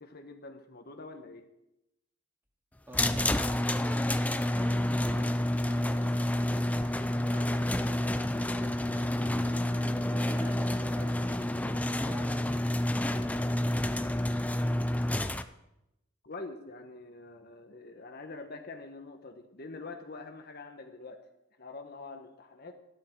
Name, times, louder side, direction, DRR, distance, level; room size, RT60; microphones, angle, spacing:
voice 1, 0.0-1.5 16.2-21.3 21.6-22.7, left 3 dB, 50° left, 5 dB, 1.2 m, -45 dB
sound 1, 2.9-15.4, left 1 dB, 5° left, 0.5 m, -29 dB
voice 2, 2.9-4.0 4.3-6.5 7.2-12.5 13.0-14.4, right 1 dB, 10° right, 0 dB, 2.4 m, -48 dB
14.0 x 12.5 x 4.6 m, 0.88 s
head